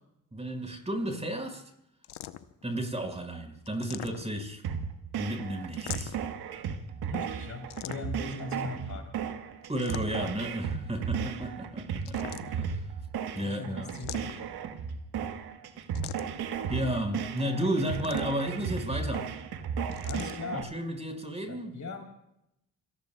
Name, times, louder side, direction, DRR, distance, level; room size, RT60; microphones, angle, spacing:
voice 1, 0.3-1.6 2.6-4.6 5.1-6.2 9.7-12.9 13.3-13.9 16.7-19.3 20.5-21.8, right 1 dB, 15° right, 4.9 m, -33 dB
sound 1, 2.0-2.6 3.7-4.5 5.7-6.4 7.7-8.3 9.6-10.4 12.0-12.8 13.9-14.6 15.9-16.5 17.8-18.5 19.9-20.4, left 13 dB, 75° left, 0.8 m, -43 dB
sound 2, 4.6-20.6, right 7 dB, 70° right, 1.4 m, -35 dB
voice 2, 7.0-9.1 13.3-14.4 20.0-20.7 21.5-22.0, left 3 dB, 45° left, 3.3 m, -39 dB
29.0 x 18.0 x 2.3 m
supercardioid pair, 50°, 40 cm